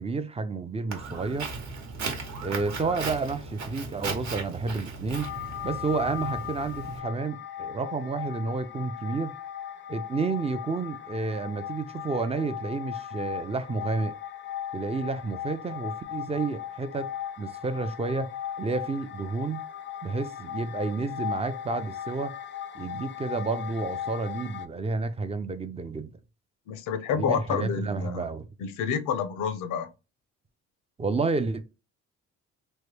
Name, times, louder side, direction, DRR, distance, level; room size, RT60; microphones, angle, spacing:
voice 1, 0.0-1.5 2.4-5.3 5.6-9.3 9.9-14.1 14.7-17.1 17.4-18.3 18.6-19.6 20.0-22.3 22.7-26.1 27.2-28.5 31.0-31.6, right 4 dB, 20° right, 0.4 m, -30 dB
Walk footsteps, 0.9-7.0, right 3 dB, 65° right, 1.1 m, -36 dB
sound 1, 5.1-24.7, left 10 dB, 40° left, 0.5 m, -37 dB
voice 2, 26.7-28.3 28.6-29.9, left 7 dB, 90° left, 0.7 m, -29 dB
3.1 x 2.1 x 3.3 m
cardioid pair, 90°, 30 cm